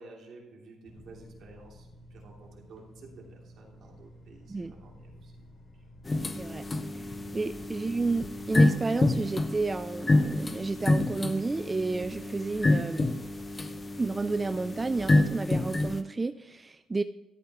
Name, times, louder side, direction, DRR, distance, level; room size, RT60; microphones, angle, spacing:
voice 1, 0.0-5.5 5.7-5.8 7.4-7.5, right 3 dB, 65° right, -1 dB, 2.9 m, -52 dB
sound 1, 0.9-8.6, equal, 50° left, 3.3 m, -52 dB
sound 2, 6.1-16.0, left 2 dB, 25° left, 0.7 m, -28 dB
voice 2, 7.3-13.1 14.0-17.0, right 3 dB, 25° right, 10 dB, 0.4 m, -31 dB
13.5 x 8.8 x 3.0 m, 1.1 s
cardioid pair, 90°, 0 cm